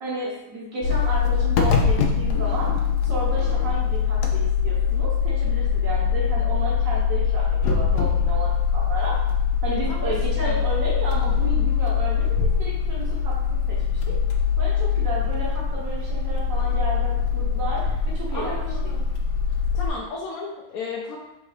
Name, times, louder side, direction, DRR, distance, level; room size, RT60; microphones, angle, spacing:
voice 1, 0.0-2.7 3.0-9.1 9.6-13.8 14.1-14.2 14.6-18.6, right 2 dB, 60° right, -5 dB, 1.6 m, -32 dB
sound 1, 0.8-19.9, left 6 dB, 90° left, 1.2 m, -23 dB
voice 2, 18.3-19.1 19.7-21.2, left 3 dB, 70° left, -4 dB, 1.1 m, -34 dB
3.8 x 2.6 x 4.7 m, 0.91 s
omnidirectional pair, 1.7 m